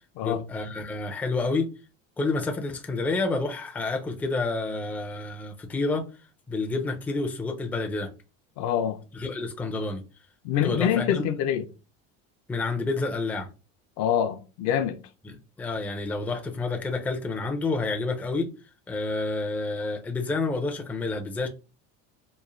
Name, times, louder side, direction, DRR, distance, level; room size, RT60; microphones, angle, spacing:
voice 1, 0.2-1.7 2.2-6.1 6.5-8.1 9.1-10.0 10.6-11.2 12.5-13.5 15.2-18.5 18.9-21.5, left 3 dB, 5° left, 0.3 m, -29 dB
voice 2, 8.6-9.0 10.4-11.7 14.0-15.0, left 9 dB, 60° left, 0.5 m, -25 dB
3.0 x 2.0 x 2.4 m
supercardioid pair, 110°, 31 cm